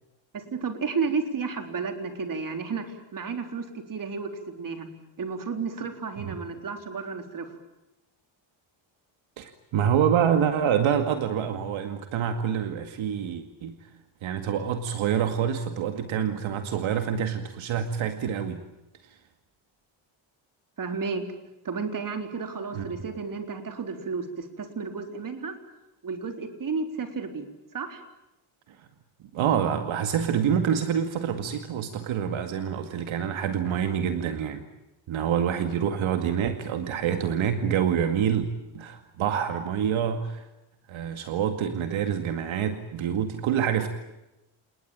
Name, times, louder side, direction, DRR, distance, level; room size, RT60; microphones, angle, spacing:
voice 1, 0.3-4.9 5.2-7.6 20.8-21.2 21.6-25.5 26.0-28.0, right 5 dB, 40° right, 6 dB, 4.0 m, -32 dB
voice 2, 9.4-13.8 14.2-18.6 22.7-22.8 29.3-34.6 35.1-38.4 38.7-40.5 40.9-43.9, right 8 dB, 75° right, 7 dB, 2.2 m, -26 dB
29.5 x 19.5 x 8.9 m, 0.95 s
cardioid pair, 115°, 48 cm